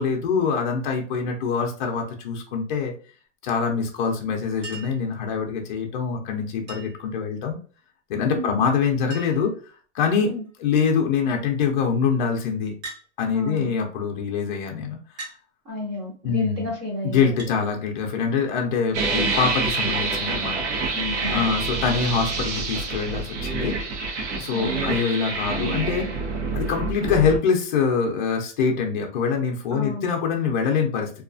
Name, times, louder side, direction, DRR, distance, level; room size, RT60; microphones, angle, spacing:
voice 1, 0.0-2.9 3.4-7.6 8.1-9.5 9.9-10.3 10.6-12.7 13.2-15.0 16.2-16.7 17.0-20.6 21.3-23.8 24.3-26.1 26.5-31.1, left 6 dB, 40° left, 2 dB, 0.5 m, -24 dB
Chink clink, 4.6-5.1 6.7-7.1 8.5-8.6 8.8-8.9 9.1-9.6 10.3-10.7 12.8-13.1 14.1-14.2 15.2-15.4 17.4-17.6 19.7-19.9 21.3-21.4, right 3 dB, 50° right, 1.2 m, -39 dB
voice 2, 13.3-13.7 15.6-17.3 20.9-21.4 24.5-24.9 25.5-25.8 29.7-30.1, left 1 dB, 20° right, -3 dB, 0.5 m, -31 dB
sound 1, 18.9-27.4, right 4 dB, 75° right, 0.9 m, -27 dB
2.3 x 2.2 x 2.5 m, 0.40 s
supercardioid pair, 165°, 36 cm